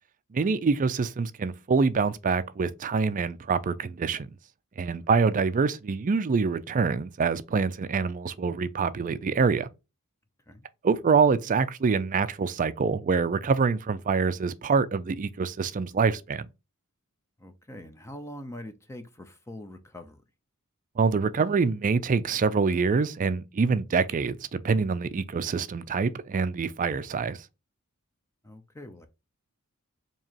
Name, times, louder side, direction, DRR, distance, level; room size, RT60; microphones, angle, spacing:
voice 1, 0.3-4.3 4.8-9.7 10.8-16.5 21.0-27.4, right 5 dB, 35° right, 0.4 m, -25 dB
voice 2, 4.9-5.3 10.5-10.7 17.4-20.2 28.4-29.1, left 1 dB, 10° left, 0.6 m, -44 dB
4.6 x 2.9 x 2.9 m
head